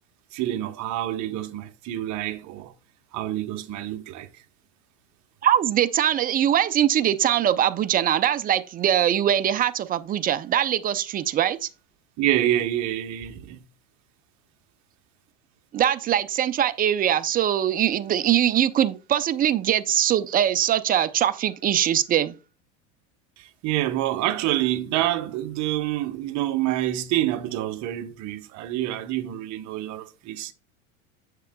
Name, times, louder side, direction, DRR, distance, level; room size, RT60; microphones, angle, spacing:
voice 1, 0.3-2.7 3.1-4.3 12.2-13.6 23.4-30.5, right 13 dB, 45° right, 0.9 m, -27 dB
voice 2, 5.4-11.7 15.7-22.3, right 10 dB, 25° right, 0.5 m, -22 dB
7.5 x 6.6 x 2.2 m
supercardioid pair, 110°, 38 cm